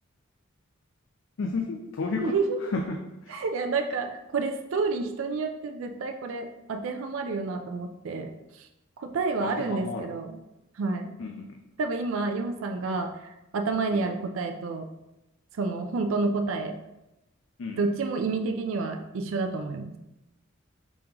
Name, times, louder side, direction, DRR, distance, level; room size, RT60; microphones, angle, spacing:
voice 1, 1.4-2.3 2.7-3.4 9.4-10.1 11.2-11.6 13.9-14.1 17.6-17.8, left 3 dB, 65° left, 3 dB, 0.4 m, -32 dB
voice 2, 2.2-2.6 3.3-8.7 9.0-10.4 10.8-11.1 11.8-14.9 15.5-16.8 17.8-20.0, right 3 dB, 75° right, 5 dB, 0.4 m, -29 dB
5.0 x 3.6 x 2.9 m, 0.94 s
head